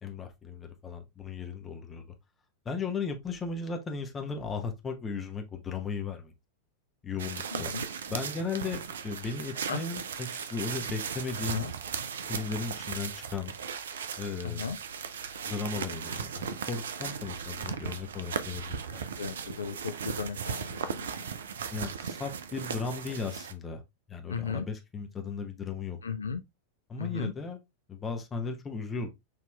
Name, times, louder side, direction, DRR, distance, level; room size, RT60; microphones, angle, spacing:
voice 1, 0.0-2.0 2.6-6.3 7.0-7.7 8.1-11.7 12.3-13.5 14.2-14.7 15.5-19.1 21.7-23.8 24.1-26.0 26.9-27.6 27.9-29.1, left 5 dB, 20° left, 0.9 m, -36 dB
sound 1, 7.2-23.5, right 7 dB, 65° right, 0.4 m, -37 dB
voice 2, 7.5-7.9 9.7-9.8 11.5-11.7 14.4-14.8 19.2-21.1 24.3-24.7 26.0-26.4 27.0-27.3, left 6 dB, 70° left, 0.3 m, -35 dB
6.1 x 2.9 x 2.2 m
figure-of-eight pair, 90°, 0 cm